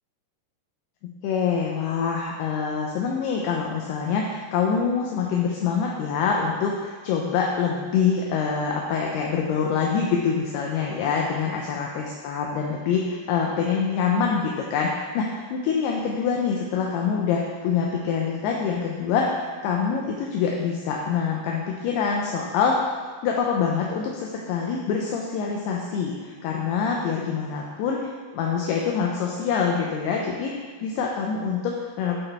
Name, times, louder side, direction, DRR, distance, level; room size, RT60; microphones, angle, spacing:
voice 1, 1.0-22.8 23.2-30.5 30.8-32.2, left 6 dB, 80° left, -1 dB, 2.4 m, -25 dB
10.5 x 3.9 x 3.3 m, 1.5 s
omnidirectional pair, 4.9 m